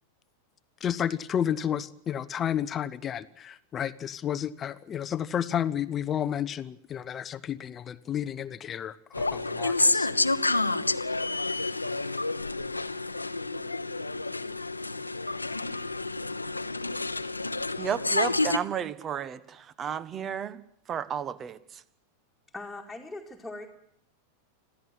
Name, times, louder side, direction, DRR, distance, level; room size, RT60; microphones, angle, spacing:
voice 1, 0.8-10.1, left 9 dB, 25° left, 15 dB, 0.9 m, -31 dB
sound 1, 9.1-18.6, left 2 dB, 85° left, 1.1 m, -29 dB
voice 2, 17.8-20.6 20.9-21.6, right 8 dB, 25° right, 18 dB, 1.5 m, -32 dB
voice 3, 22.5-23.7, left 2 dB, 5° left, -1 dB, 2.7 m, -40 dB
26.5 x 16.0 x 9.3 m, 0.69 s
figure-of-eight pair, 90°, 0 cm